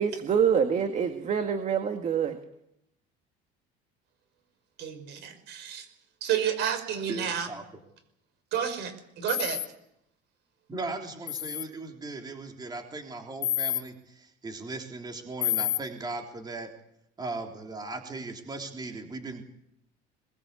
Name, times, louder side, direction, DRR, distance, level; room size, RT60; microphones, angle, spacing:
voice 1, 0.0-2.4, right 7 dB, 35° right, 7 dB, 1.9 m, -26 dB
voice 2, 4.8-5.9 6.2-7.5 8.5-9.6, right 9 dB, 60° right, 11 dB, 5.3 m, -30 dB
voice 3, 7.1-7.6 10.7-16.7 17.2-19.4, right 3 dB, 20° right, 3 dB, 3.6 m, -38 dB
sound 1, 9.3-9.7 11.3-11.6 13.4-13.8 15.4-15.8, left 12 dB, 55° left, 1.4 m, -28 dB
22.5 x 20.5 x 8.4 m, 0.79 s
cardioid pair, 130°, 20 cm